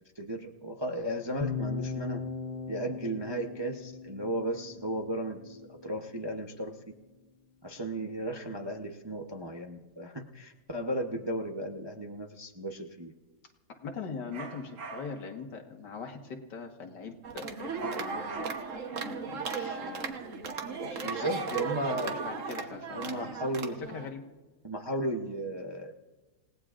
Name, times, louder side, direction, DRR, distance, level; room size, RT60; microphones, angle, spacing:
voice 1, 0.1-2.2 2.7-6.8 7.6-13.1 21.0-22.2 22.9-23.8 24.6-26.1, right 1 dB, 25° right, 1 dB, 0.6 m, -35 dB
sound 1, 1.4-5.5, left 5 dB, 45° left, 0.7 m, -38 dB
voice 2, 13.7-18.4 18.9-20.2 20.8-23.3 23.9-24.2, left 5 dB, 80° left, 3 dB, 2.2 m, -42 dB
sound 2, 14.3-15.3 17.8-18.9, right 4 dB, 75° right, 1.7 m, -43 dB
sound 3, 17.2-24.1, right 5 dB, 50° right, 1.4 m, -36 dB
28.5 x 18.0 x 2.5 m, 1.2 s
omnidirectional pair, 1.8 m